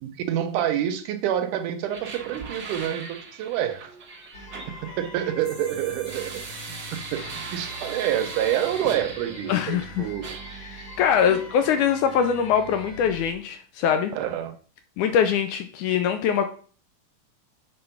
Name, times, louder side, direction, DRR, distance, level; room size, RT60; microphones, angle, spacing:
voice 1, 0.0-3.9 4.8-6.3 6.9-7.2 7.5-10.2 11.3-11.4 14.1-14.5, right 10 dB, 75° right, 8 dB, 2.1 m, -27 dB
sound 1, 1.9-9.9 10.2-11.4, right 4 dB, 55° right, 1.2 m, -40 dB
sound 2, 4.3-13.3, left 1 dB, 50° left, 3.2 m, -42 dB
voice 2, 9.5-10.1 10.7-14.1 15.0-16.5, left 8 dB, 80° left, 7 dB, 1.9 m, -23 dB
7.7 x 4.2 x 5.7 m, 0.43 s
omnidirectional pair, 3.9 m